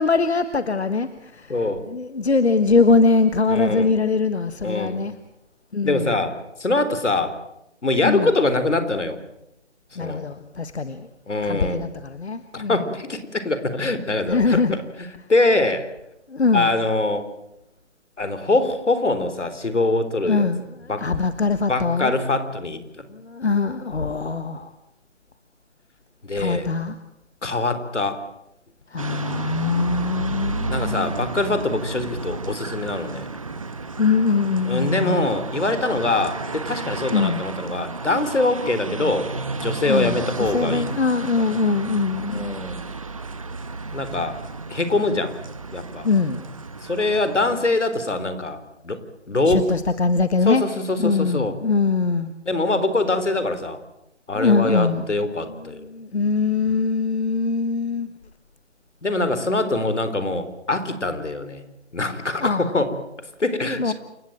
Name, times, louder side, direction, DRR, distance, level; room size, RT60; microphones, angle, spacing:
voice 1, 0.0-1.6 1.9-5.1 5.7-6.1 8.0-8.3 9.9-11.1 11.4-12.8 14.3-14.8 16.3-16.8 20.2-22.1 23.1-24.7 26.4-27.0 28.9-31.2 34.0-35.3 37.1-37.4 39.9-42.6 46.0-46.4 49.5-50.6 51.0-52.3 54.3-55.0 55.3-58.1 62.4-62.7 63.8-63.9, left 4 dB, 65° left, 11 dB, 1.5 m, -22 dB
voice 2, 1.5-1.8 3.5-3.9 4.6-5.1 5.8-7.3 7.8-9.2 10.0-10.2 11.3-11.8 12.5-14.6 15.3-15.9 16.5-17.3 18.2-20.5 20.9-21.1 21.7-23.1 26.2-26.7 27.4-28.2 30.7-33.3 34.7-39.3 39.5-40.9 42.3-42.8 43.9-44.4 44.7-45.4 45.7-46.1 46.8-49.0 49.3-49.7 50.5-51.5 52.5-53.8 54.3-55.9 59.0-61.6 61.9-62.9 63.4-63.9, left 2 dB, 85° left, 11 dB, 4.0 m, -23 dB
sound 1, 29.0-47.6, right 4 dB, 30° right, 1.4 m, -32 dB
28.5 x 15.5 x 8.9 m, 0.85 s
figure-of-eight pair, 175°, 35 cm